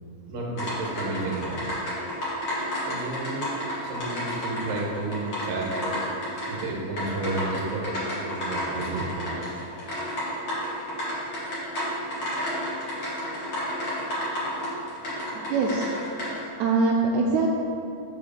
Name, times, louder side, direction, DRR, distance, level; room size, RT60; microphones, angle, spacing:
voice 1, 0.2-1.7 2.9-3.5 3.8-6.0 6.5-9.6, right 2 dB, 55° right, -3 dB, 1.8 m, -32 dB
sound 1, 0.6-16.5, equal, 40° left, 1.9 m, -32 dB
voice 2, 15.3-15.8 16.6-17.5, right 4 dB, 85° right, -1 dB, 1.7 m, -23 dB
5.8 x 4.9 x 6.5 m, 2.6 s
omnidirectional pair, 3.8 m